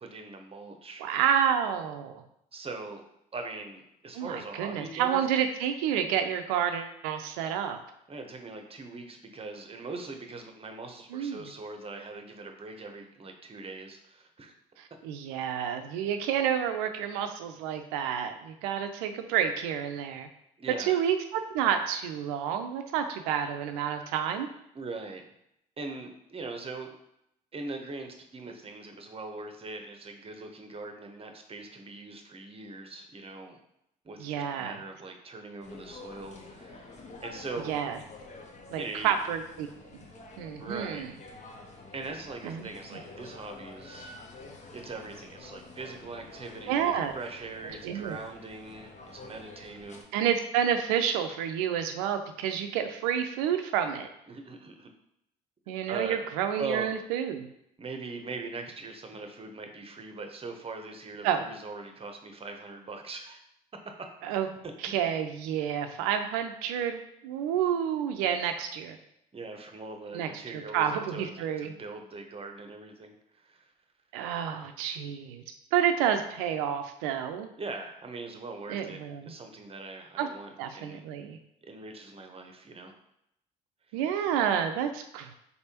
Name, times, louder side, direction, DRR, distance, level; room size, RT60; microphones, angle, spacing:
voice 1, 0.0-1.0 2.5-3.0 3.3-5.2 8.1-14.5 20.6-21.0 24.7-25.3 25.8-26.9 27.5-33.6 34.0-37.0 37.2-37.7 38.8-39.1 40.6-41.2 41.9-44.1 44.7-50.1 54.3-54.9 55.9-56.2 56.6-56.9 57.8-63.4 64.0-64.1 64.6-64.7 69.3-73.7 77.6-81.0 81.6-82.9 83.9-84.0, right 3 dB, 30° right, 4 dB, 0.8 m, -41 dB
voice 2, 1.0-2.2 4.1-7.8 11.1-11.5 14.8-20.3 20.8-24.5 34.2-34.8 37.7-38.0 38.7-39.7 39.9-40.0 40.4-41.1 42.4-42.7 46.7-47.2 47.8-48.2 50.1-54.1 55.7-57.5 61.2-61.4 64.2-64.5 64.8-69.0 70.1-71.7 74.1-75.4 75.7-77.5 78.7-79.3 80.2-80.3 80.6-81.4 83.9-85.3, right 9 dB, 80° right, 7 dB, 0.5 m, -29 dB
sound 1, 35.6-50.0, left 3 dB, 35° left, 0.8 m, -48 dB
4.2 x 3.4 x 2.8 m, 0.79 s
hypercardioid pair, 55°, 19 cm